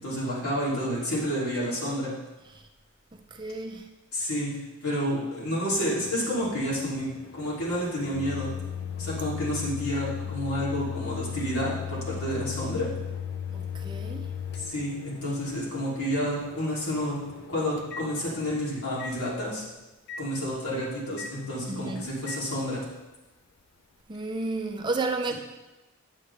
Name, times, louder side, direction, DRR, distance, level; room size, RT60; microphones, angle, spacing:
voice 1, 0.0-2.1 4.1-7.1 7.3-8.5 9.0-12.9 14.6-17.2 17.5-19.6 20.2-22.8, equal, 80° left, -7 dB, 2.9 m, -30 dB
voice 2, 3.1-3.9 13.5-14.3 21.7-22.1 24.1-25.3, right 3 dB, 20° right, 4 dB, 0.4 m, -32 dB
Microwave oven, 6.0-18.6 19.0-19.2 20.1-20.2 21.2-21.3 22.3-22.4, left 8 dB, 50° left, 0.5 m, -37 dB
8.5 x 7.3 x 3.3 m, 1.1 s
head